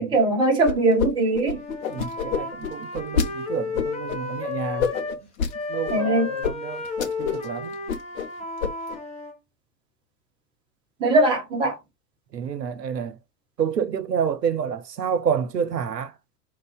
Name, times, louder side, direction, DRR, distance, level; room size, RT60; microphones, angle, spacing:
voice 1, 0.0-1.6 5.9-6.3 11.0-11.8, right 2 dB, 10° right, 0.5 m, -20 dB
sound 1, 0.7-1.1 1.3-3.3 3.8-4.2 4.8-5.5 5.9-6.0 6.4-6.5 6.8-7.5 7.7-8.3 8.6-9.0, left 6 dB, 60° left, 0.7 m, -26 dB
Wind instrument woodwind instrument, 1.5-5.2 5.5-9.3, left 4 dB, 15° left, 0.9 m, -33 dB
voice 2, 1.9-4.9 5.7-6.8 7.2-7.8 12.3-13.1 13.6-16.1, right 7 dB, 90° right, 0.5 m, -28 dB
2.4 x 2.2 x 2.3 m
figure-of-eight pair, 90°, 48 cm